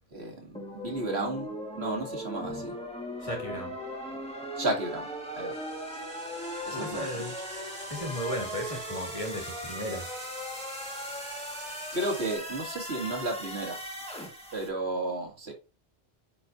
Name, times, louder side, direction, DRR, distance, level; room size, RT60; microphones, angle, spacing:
voice 1, 0.1-1.5 1.7-2.7 4.1-4.2 4.6-5.1 5.4-5.6 6.7-7.3 11.9-13.8 14.5-15.5, right 2 dB, 80° right, 2.4 m, -33 dB
sound 1, 0.5-14.7, equal, 5° left, 1.5 m, -38 dB
voice 2, 2.4-2.7 3.2-3.8 6.7-7.4 7.9-10.2, equal, 30° left, 2.1 m, -36 dB
sound 2, 5.5-12.4, right 1 dB, 30° right, 3.6 m, -47 dB
9.4 x 4.4 x 2.6 m
omnidirectional pair, 1.1 m